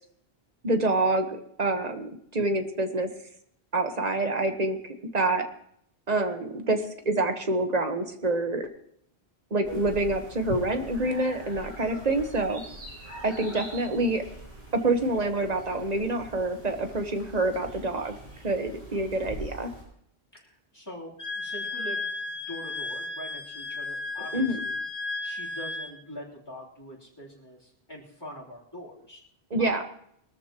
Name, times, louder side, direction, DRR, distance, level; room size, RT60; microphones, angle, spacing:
voice 1, 0.6-3.1 3.7-4.8 5.1-5.5 6.1-8.7 9.5-12.6 13.2-14.2 14.7-18.1 18.4-19.7 24.3-24.6 29.5-29.8, right 2 dB, 40° right, 6 dB, 1.3 m, -27 dB
sound 1, 9.6-19.8, right 1 dB, 90° right, 6.6 m, -43 dB
voice 2, 20.3-24.8 25.2-29.2 29.6-29.9, equal, 20° left, -5 dB, 3.4 m, -44 dB
Wind instrument woodwind instrument, 21.2-25.9, left 3 dB, 45° left, 2.3 m, -34 dB
22.0 x 13.5 x 3.0 m, 0.69 s
omnidirectional pair, 1.1 m